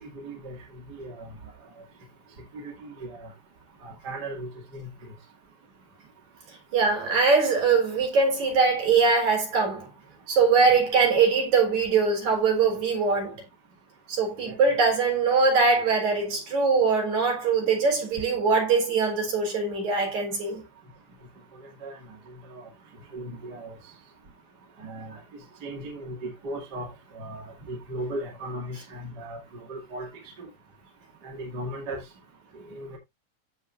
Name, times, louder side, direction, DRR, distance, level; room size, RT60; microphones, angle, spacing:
voice 1, 0.1-0.6 0.9-1.3 2.6-3.3 3.8-4.9 14.4-14.6 21.8-22.0 22.6-22.7 23.1-23.7 24.8-25.2 25.6-26.9 27.2-29.4 29.7-30.1 31.2-32.0 32.7-33.0, right 1 dB, 30° right, 2.6 m, -36 dB
voice 2, 6.7-9.9 10.3-13.4 14.1-20.6, right 4 dB, 55° right, 5.2 m, -22 dB
15.0 x 5.4 x 2.6 m
omnidirectional pair, 3.9 m